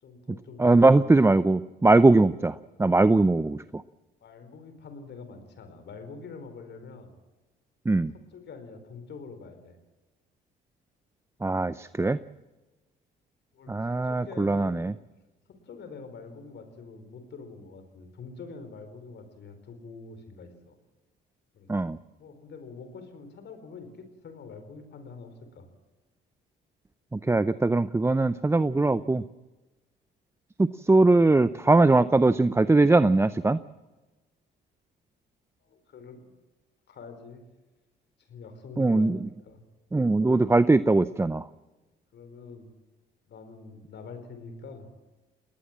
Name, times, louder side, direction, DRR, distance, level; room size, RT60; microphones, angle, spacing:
voice 1, 0.0-1.2 4.2-7.1 8.1-9.8 13.5-14.8 15.5-20.8 21.5-21.7 22.2-25.7 35.6-36.3 36.9-37.4 38.2-39.6 42.1-42.7 43.3-44.9, left 4 dB, 60° left, 9 dB, 4.7 m, -45 dB
voice 2, 0.6-3.8 7.9-8.1 11.4-12.2 13.7-14.9 21.7-22.0 27.1-29.2 30.6-33.6 38.8-39.2 39.9-41.5, right 2 dB, 10° right, 14 dB, 0.6 m, -21 dB
20.5 x 19.0 x 7.5 m, 1.1 s
supercardioid pair, 75°, 20 cm